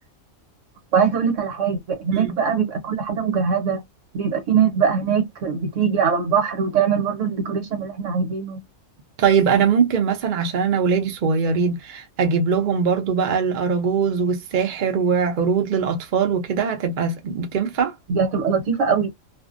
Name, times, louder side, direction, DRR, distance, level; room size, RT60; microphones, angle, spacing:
voice 1, 0.9-3.8 4.1-8.6 18.1-19.1, right 6 dB, 70° right, 1.2 m, -22 dB
voice 2, 9.2-17.9, right 6 dB, 50° right, 0.6 m, -21 dB
2.6 x 2.1 x 2.5 m
omnidirectional pair, 1.4 m